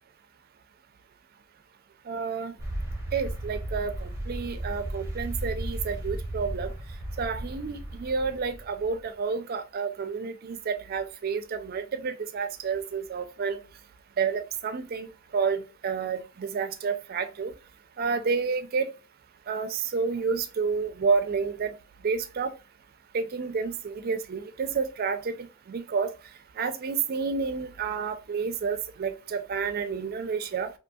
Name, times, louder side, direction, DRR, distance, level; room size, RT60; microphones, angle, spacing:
voice 1, 2.1-2.5 3.1-6.7 7.2-13.6 14.2-15.1 15.3-17.5 18.0-18.9 19.5-21.7 22.0-22.5 23.1-25.3 25.7-26.1 26.6-30.7, right 5 dB, 50° right, 0.4 m, -30 dB
sound 1, 2.6-9.1, right 1 dB, 15° right, 0.7 m, -35 dB
2.7 x 2.6 x 2.2 m
head